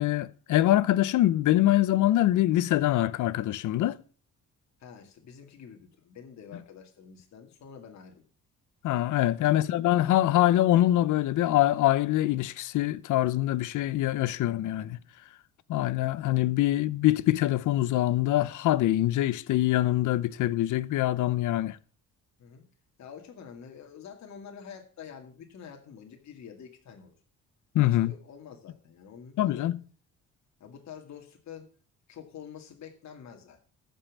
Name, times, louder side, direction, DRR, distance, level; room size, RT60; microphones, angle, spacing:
voice 1, 0.0-4.0 8.8-15.0 15.7-21.8 27.7-28.1 29.4-29.7, left 14 dB, 80° left, 0.8 m, -24 dB
voice 2, 4.8-8.2 9.4-9.6 22.4-22.6 23.0-27.1 27.8-29.7 30.6-31.7 32.1-33.6, left 7 dB, 65° left, 2.2 m, -47 dB
14.0 x 5.6 x 7.3 m
cardioid pair, 90°, 30 cm